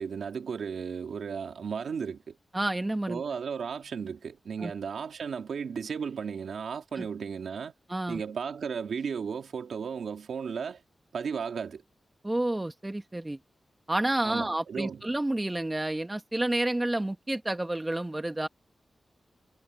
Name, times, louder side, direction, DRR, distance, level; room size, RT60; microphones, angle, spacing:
voice 1, 0.0-2.4 3.1-7.7 8.1-10.8 11.1-11.8 14.2-15.0, right 6 dB, 90° right, 2.1 m, -35 dB
voice 2, 2.5-3.2 4.6-4.7 7.0-7.1 7.9-8.2 12.2-13.4 13.9-18.5, right 1 dB, 15° right, 1.6 m, -30 dB
wide cardioid pair, 110°, 0 cm